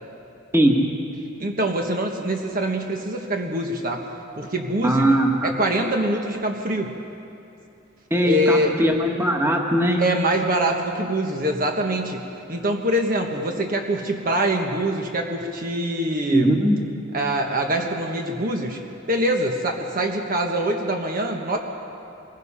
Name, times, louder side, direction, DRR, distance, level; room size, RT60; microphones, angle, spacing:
voice 1, 1.4-4.0 4.4-5.1 5.4-6.9 8.2-8.7 10.0-12.2 12.5-16.5 17.1-18.8 19.1-21.6, right 1 dB, 45° right, 2 dB, 1.4 m, -24 dB
voice 2, 4.8-5.5 8.1-10.0 16.3-16.8, right 1 dB, 10° right, 1 dB, 1.8 m, -19 dB
24.5 x 20.5 x 5.7 m, 2.8 s
head